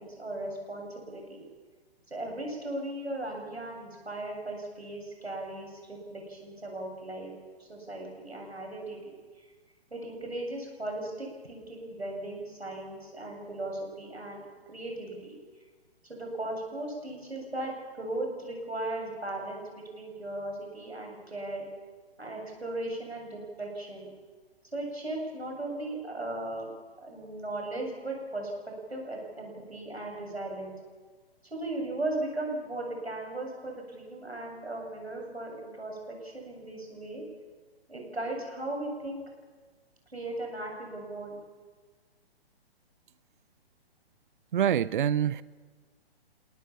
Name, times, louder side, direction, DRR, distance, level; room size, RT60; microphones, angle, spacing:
voice 1, 0.2-1.4 2.1-7.3 7.6-9.0 9.4-9.5 9.9-15.4 16.1-19.6 19.9-21.7 22.2-24.1 24.7-26.7 27.0-30.7 31.5-37.2 37.9-39.2 40.1-41.4, right 2 dB, 90° right, 7.7 m, -37 dB
voice 2, 44.5-45.4, right 9 dB, 55° right, 0.6 m, -25 dB
28.5 x 18.0 x 7.4 m
figure-of-eight pair, 125°, 31 cm